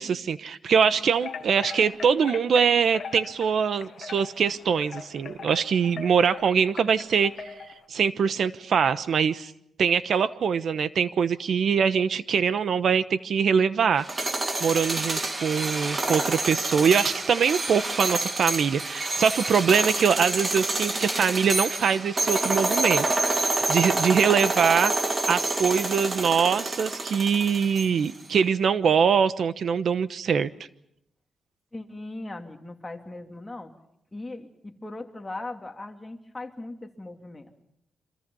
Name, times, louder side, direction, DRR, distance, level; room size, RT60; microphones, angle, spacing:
voice 1, 0.0-7.5 7.9-9.5 9.8-14.0 14.6-23.1 23.4-24.9 25.3-30.5, right 6 dB, 60° right, 14 dB, 1.0 m, -23 dB
sound 1, 1.2-7.8, left 6 dB, 55° left, 1.5 m, -40 dB
sound 2, 14.0-28.1, right 2 dB, 25° right, 1.9 m, -28 dB
voice 2, 31.7-33.7 34.1-37.5, left 2 dB, 15° left, 3 dB, 2.7 m, -39 dB
28.5 x 26.0 x 5.5 m, 0.77 s
wide cardioid pair, 135°, 0 cm